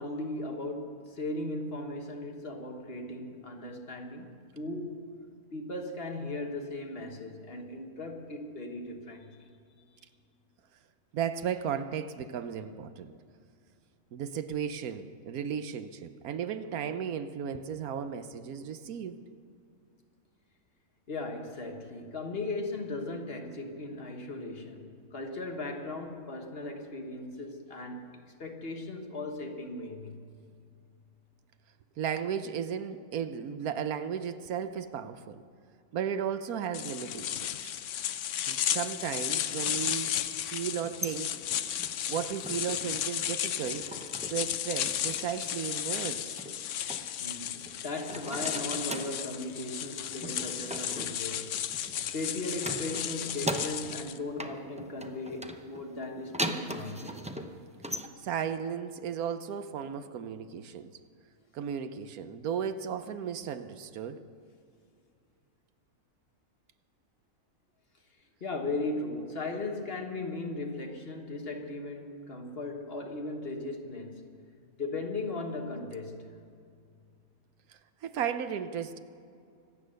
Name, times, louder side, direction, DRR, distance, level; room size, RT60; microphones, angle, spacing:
voice 1, 0.0-5.2 5.5-9.5 21.1-30.4 47.2-51.7 52.1-57.2 68.4-74.3 74.8-76.4, left 2 dB, 45° left, 1.5 m, -37 dB
voice 2, 11.1-13.1 14.1-19.2 32.0-35.4 35.9-37.7 38.5-40.2 40.5-41.3 42.1-43.9 44.3-46.3 58.2-60.9 61.5-64.2 78.0-79.0, right 8 dB, 90° right, 1.3 m, -35 dB
sound 1, 36.7-54.2, left 10 dB, 65° left, 0.9 m, -34 dB
sound 2, 40.7-42.9 43.2-44.5 44.7-45.3 46.4-47.7 48.0-49.3 50.2-52.1 52.6-54.1 54.4-58.1, right 1 dB, 10° right, 0.4 m, -39 dB
25.0 x 8.7 x 6.5 m
omnidirectional pair, 1.5 m